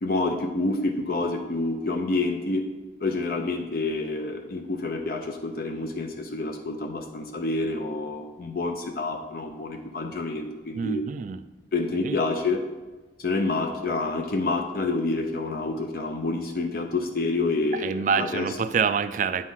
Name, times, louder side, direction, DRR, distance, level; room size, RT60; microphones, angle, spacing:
voice 1, 0.0-2.6 3.0-11.0 11.7-12.6 13.2-18.6, left 3 dB, 55° left, 3 dB, 0.6 m, -28 dB
voice 2, 10.7-11.4 12.0-12.2 17.8-19.4, right 6 dB, 45° right, 12 dB, 0.3 m, -26 dB
9.1 x 3.2 x 5.5 m, 1.2 s
head